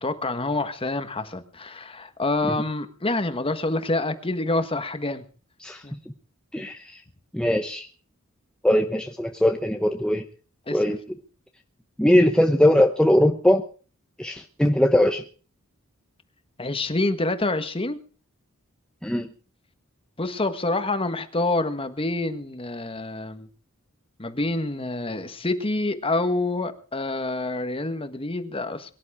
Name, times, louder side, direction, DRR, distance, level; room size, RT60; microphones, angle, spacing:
voice 1, 0.0-5.2 5.8-5.9 10.7-10.8 16.6-18.0 20.2-23.5 24.2-28.9, left 2 dB, 25° left, 10 dB, 1.5 m, -27 dB
voice 2, 7.3-7.9 8.6-10.2 10.7-11.0 12.0-13.6 14.2-15.2 19.0-19.3, left 1 dB, 5° left, 4 dB, 0.9 m, -20 dB
22.5 x 11.5 x 4.9 m, 0.39 s
head